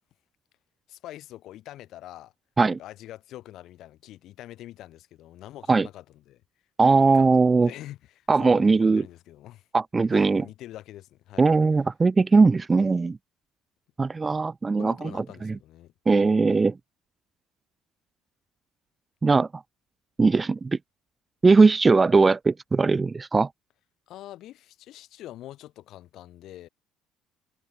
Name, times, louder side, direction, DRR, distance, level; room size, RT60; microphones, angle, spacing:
voice 1, 0.9-2.3 2.7-6.4 6.9-9.7 10.1-11.5 14.7-15.9 24.1-26.7, left 14 dB, 50° left, 6.8 m, -44 dB
voice 2, 6.8-7.7 8.3-9.0 9.7-10.4 11.4-13.2 14.0-14.9 15.4-15.5 16.1-16.7 19.2-19.5 20.2-20.8 21.4-23.5, right 4 dB, 15° right, 0.5 m, -19 dB
cardioid pair, 175°, 0 cm